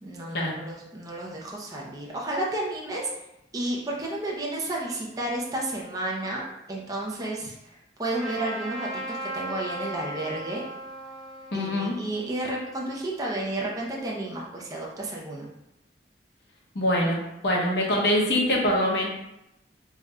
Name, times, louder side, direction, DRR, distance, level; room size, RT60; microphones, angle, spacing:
voice 1, 0.0-3.1 3.5-10.6 11.5-15.5, right 1 dB, 20° right, -3 dB, 0.5 m, -32 dB
Trumpet, 8.2-13.2, right 1 dB, ahead, 1.0 m, -37 dB
voice 2, 11.5-12.0 16.7-19.1, left 1 dB, 65° left, -2 dB, 1.0 m, -24 dB
3.6 x 2.2 x 4.1 m, 0.87 s
head